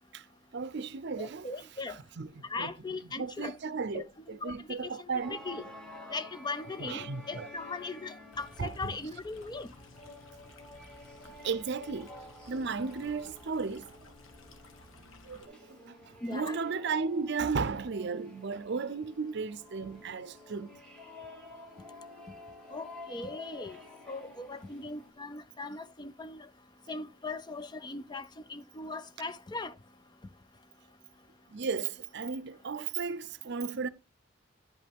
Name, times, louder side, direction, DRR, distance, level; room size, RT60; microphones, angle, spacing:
voice 1, 0.5-1.5 1.9-2.7 3.2-5.4 6.8-7.5 8.6-8.9 11.4-12.1 12.5-14.0 15.2-20.8 31.5-33.9, right 5 dB, 60° right, 0.6 m, -35 dB
voice 2, 1.2-2.0 2.4-3.6 3.9-4.0 4.4-5.6 6.1-9.7 16.2-16.6 22.7-23.8 24.1-26.5 26.9-29.7, left 3 dB, 20° left, 0.5 m, -39 dB
sound 1, 5.2-25.1, left 2 dB, 5° left, 2.0 m, -51 dB
Stream, 8.3-15.5, left 2 dB, 85° left, 1.3 m, -55 dB
10.5 x 5.4 x 3.5 m
head